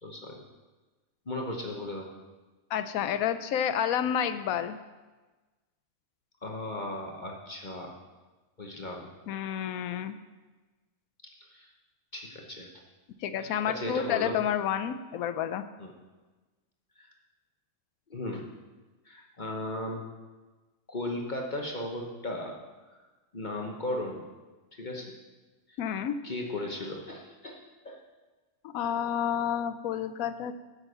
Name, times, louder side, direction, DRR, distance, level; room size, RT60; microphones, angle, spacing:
voice 1, 0.0-0.4 1.3-2.1 6.4-8.0 8.6-9.1 11.5-11.7 12.1-12.7 13.4-14.4 15.8-15.9 17.0-17.1 18.1-18.5 19.0-20.0 20.9-22.6 23.3-24.2 24.8-25.1 26.2-28.0, left 1 dB, 35° left, 1 dB, 1.0 m, -36 dB
voice 2, 2.7-4.8 9.3-10.2 13.2-15.6 25.8-26.2 28.6-30.5, left 9 dB, 85° left, 10 dB, 1.1 m, -30 dB
7.4 x 6.4 x 7.7 m, 1.2 s
omnidirectional pair, 1.4 m